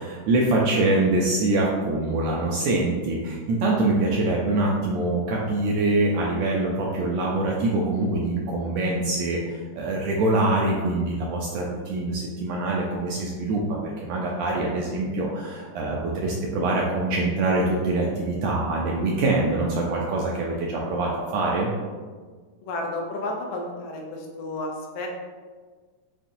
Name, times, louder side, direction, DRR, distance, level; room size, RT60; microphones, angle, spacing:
voice 1, 0.0-21.7, right 2 dB, 80° right, -2 dB, 1.6 m, -24 dB
voice 2, 22.6-25.1, left 2 dB, 80° left, 0 dB, 1.9 m, -32 dB
7.1 x 2.7 x 2.5 m, 1.5 s
omnidirectional pair, 3.5 m